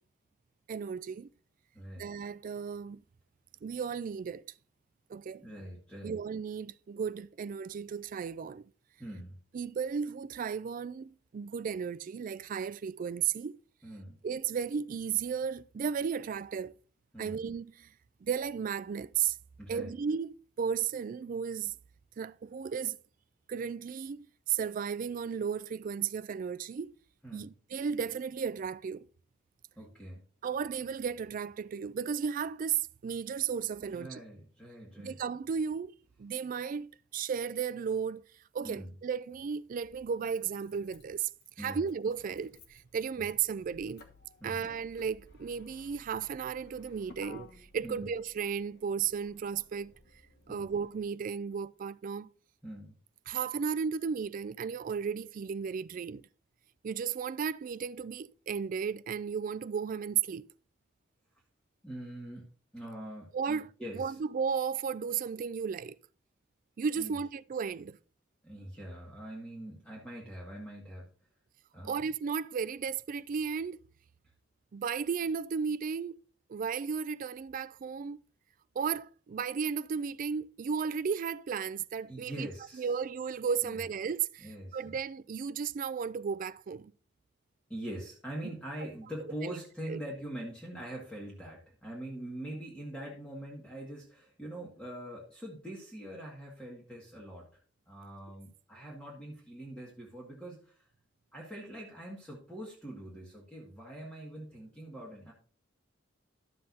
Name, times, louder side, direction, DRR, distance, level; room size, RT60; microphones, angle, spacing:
voice 1, 0.7-1.3 2.0-3.0 3.6-4.4 5.1-5.5 6.0-8.6 9.5-13.6 14.2-16.7 17.2-17.9 18.2-19.4 19.7-21.7 22.2-23.0 23.5-26.9 27.3-29.0 30.4-34.2 35.0-38.2 38.5-41.3 41.6-44.0 44.4-49.9 50.5-52.3 53.3-56.2 56.8-60.4 63.3-63.7 63.9-66.0 66.8-68.0 71.8-73.8 74.7-76.2 76.5-78.2 78.8-82.5 82.8-86.9 89.5-89.6 89.9-90.0, right 6 dB, 45° right, 0.3 m, -34 dB
voice 2, 1.7-2.1 5.4-6.2 9.0-9.4 13.8-14.2 17.1-17.4 19.6-20.0 27.2-27.5 29.8-30.2 33.8-35.2 38.6-38.9 41.6-41.8 44.4-44.6 47.8-48.1 50.5-50.7 52.6-53.0 61.8-64.2 67.0-67.2 68.4-71.1 71.7-72.1 82.1-82.9 83.6-83.8 84.4-85.0 87.7-97.6 97.9-100.9 101.3-105.3, right 1 dB, 5° left, 2.0 m, -43 dB
Motor vehicle (road), 38.6-38.7 39.9-51.0, left 1 dB, 60° left, 1.3 m, -57 dB
12.0 x 7.6 x 2.7 m
head